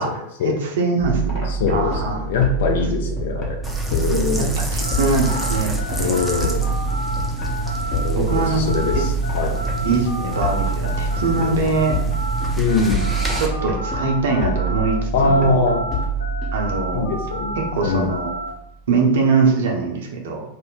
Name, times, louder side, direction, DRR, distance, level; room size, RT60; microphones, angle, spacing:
voice 1, 0.0-2.2 3.0-3.1 4.4-4.5 4.7-5.7 6.0-6.1 8.2-8.6 9.8-11.9 13.4-15.7 16.5-17.1 17.6-18.3 18.9-20.4, right 4 dB, 60° right, 1 dB, 0.6 m, -22 dB
sound 1, 1.0-18.6, right 3 dB, 30° left, 0.9 m, -27 dB
voice 2, 1.5-3.6 3.9-4.5 6.0-6.7 7.9-9.6 11.3-11.6 12.6-13.1 15.1-15.8 16.9-17.6 17.8-18.1, left 4 dB, 55° left, 4 dB, 0.5 m, -22 dB
sound 2, 3.6-13.5, right 2 dB, 5° right, 0.5 m, -28 dB
sound 3, 4.8-15.0 15.2-18.5, equal, 85° left, 0.8 m, -31 dB
2.5 x 2.1 x 3.7 m, 0.80 s
figure-of-eight pair, 90°, 0 cm